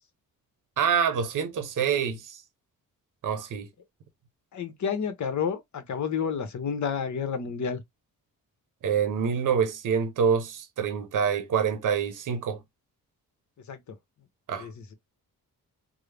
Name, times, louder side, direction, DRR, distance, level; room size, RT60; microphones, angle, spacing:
voice 1, 0.8-2.4 3.2-3.7 8.8-12.6 14.5-14.7, right 7 dB, 60° right, 0.8 m, -26 dB
voice 2, 4.5-7.8 13.7-13.8 14.6-14.7, left 6 dB, 55° left, 0.9 m, -30 dB
3.6 x 2.0 x 3.3 m
cardioid pair, 95°, 35 cm